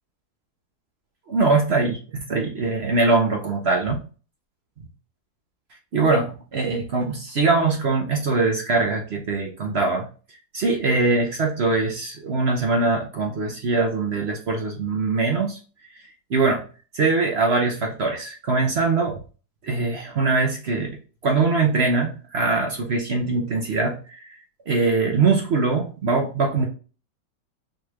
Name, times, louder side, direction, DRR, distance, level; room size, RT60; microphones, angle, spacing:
voice 1, 1.3-2.0 2.3-4.0 5.9-10.1 10.5-15.6 16.3-16.6 16.9-19.2 19.6-20.9 21.2-24.3 24.7-26.7, right 3 dB, 55° right, 1 dB, 0.7 m, -22 dB
5.3 x 3.1 x 2.4 m, 0.37 s
omnidirectional pair, 2.0 m